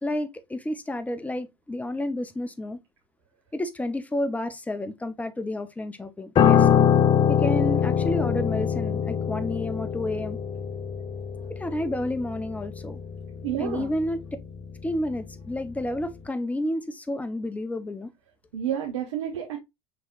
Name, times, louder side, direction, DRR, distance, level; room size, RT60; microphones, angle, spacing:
voice 1, 0.0-2.8 3.5-6.9 7.3-10.4 11.5-13.0 13.6-14.2 14.8-18.1, left 1 dB, 10° left, 0.9 m, -30 dB
Piano, 6.4-15.7 16.0-16.3, left 8 dB, 35° left, 0.6 m, -24 dB
voice 2, 13.4-13.9 18.5-19.6, right 9 dB, 80° right, 1.1 m, -29 dB
6.0 x 3.3 x 2.4 m
hypercardioid pair, 80°, 15 cm